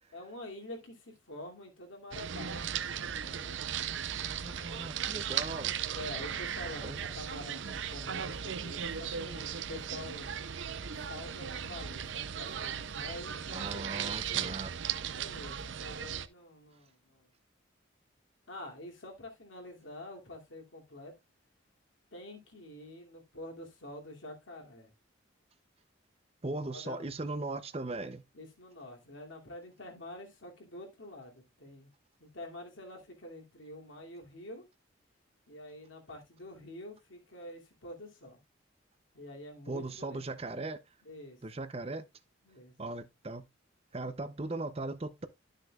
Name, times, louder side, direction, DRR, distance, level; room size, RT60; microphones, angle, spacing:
voice 1, 0.1-3.6 4.6-5.0 5.9-10.3 11.0-14.6 15.1-17.3 18.5-21.1 22.1-24.9 26.7-27.1 28.3-31.9 32.2-34.7 35.5-38.4 39.1-40.2 41.0-41.4 42.4-42.7, left 1 dB, 75° left, 2.7 m, -47 dB
sound 1, 2.1-16.3, right 8 dB, 70° right, 0.6 m, -37 dB
voice 2, 4.4-5.7 6.8-7.0 13.5-14.7 26.4-28.2 39.7-40.8 41.4-42.1 42.8-43.4 43.9-45.3, right 2 dB, 30° right, 0.6 m, -38 dB
12.0 x 6.5 x 2.4 m
head